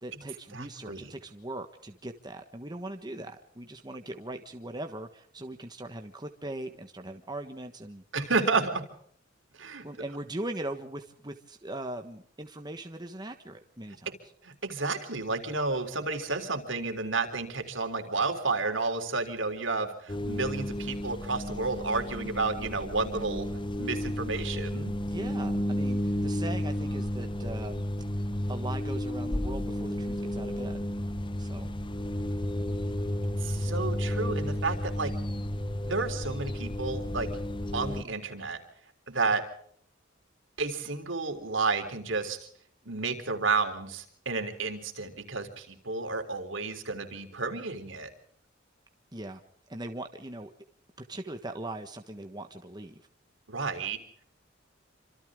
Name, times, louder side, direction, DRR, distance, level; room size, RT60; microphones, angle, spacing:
voice 1, 0.0-8.0 9.8-14.1 25.1-27.8 28.5-30.8 31.4-31.7 49.1-49.4 49.7-50.5 51.1-53.0, right 1 dB, 20° right, 5 dB, 1.4 m, -40 dB
voice 2, 0.5-1.1 8.1-8.8 9.6-9.8 14.4-23.5 23.7-24.9 33.4-35.1 35.9-37.3 37.7-38.6 39.1-39.4 40.6-42.5 42.9-48.1 53.5-54.0, right 3 dB, 70° right, 6 dB, 3.7 m, -31 dB
sound 1, 20.1-38.0, left 1 dB, 25° left, 0.8 m, -32 dB
27.5 x 26.0 x 3.8 m, 0.63 s
head